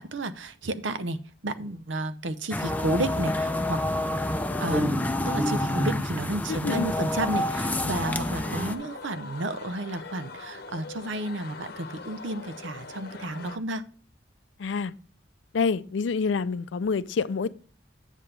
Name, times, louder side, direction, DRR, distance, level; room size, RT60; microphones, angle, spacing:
voice 1, 0.0-3.8 4.6-13.8, right 2 dB, 80° right, 0.7 m, -32 dB
sound 1, 2.5-8.7, left 1 dB, 10° left, 0.5 m, -28 dB
voice 2, 6.5-6.9 14.6-14.9 15.5-17.5, left 5 dB, 75° left, 0.4 m, -27 dB
sound 2, 6.7-13.6, left 4 dB, 55° left, 0.9 m, -42 dB
8.3 x 7.8 x 3.3 m
head